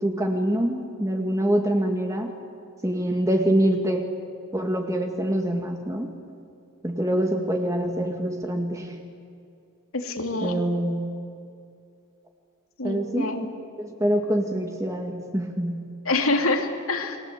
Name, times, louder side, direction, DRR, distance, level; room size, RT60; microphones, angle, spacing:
voice 1, 0.0-2.3 2.8-4.1 4.5-6.1 6.8-8.9 10.4-11.1 12.8-13.3 13.8-15.9, right 1 dB, 15° right, 3 dB, 1.9 m, -25 dB
voice 2, 9.9-10.6 12.8-13.5 16.0-17.2, left 2 dB, 75° left, 4 dB, 2.9 m, -26 dB
29.5 x 22.5 x 8.3 m, 2.5 s
head